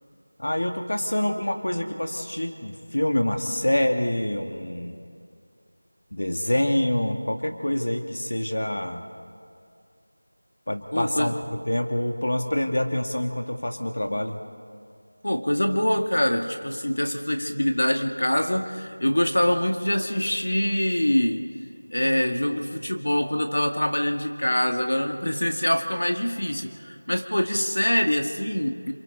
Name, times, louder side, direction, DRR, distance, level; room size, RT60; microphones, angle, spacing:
voice 1, 0.4-5.0 6.1-9.0 10.7-11.3 11.7-14.4, left 1 dB, 60° left, 4 dB, 1.9 m, -26 dB
voice 2, 10.9-11.4 15.2-21.5 21.9-28.9, left 1 dB, 80° left, 4 dB, 2.1 m, -24 dB
28.5 x 28.5 x 4.0 m, 2.3 s
figure-of-eight pair, 180°, 0 cm